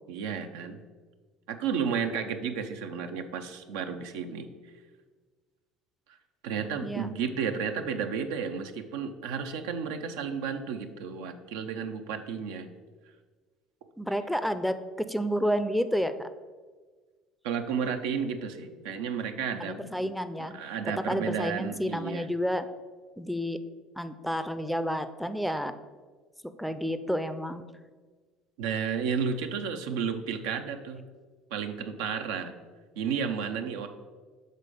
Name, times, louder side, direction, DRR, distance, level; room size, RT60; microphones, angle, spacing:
voice 1, 0.1-0.8 1.5-4.5 6.4-12.7 17.4-20.1 20.4-22.3 28.6-31.0 31.5-32.5 33.0-33.9, right 6 dB, 80° right, 6 dB, 0.6 m, -32 dB
voice 2, 14.0-16.3 19.6-20.5 21.1-22.7 23.2-23.6 24.0-25.7 26.6-27.6, equal, ahead, 10 dB, 0.4 m, -30 dB
6.6 x 3.7 x 5.1 m, 1.4 s
hypercardioid pair, 75°, 0 cm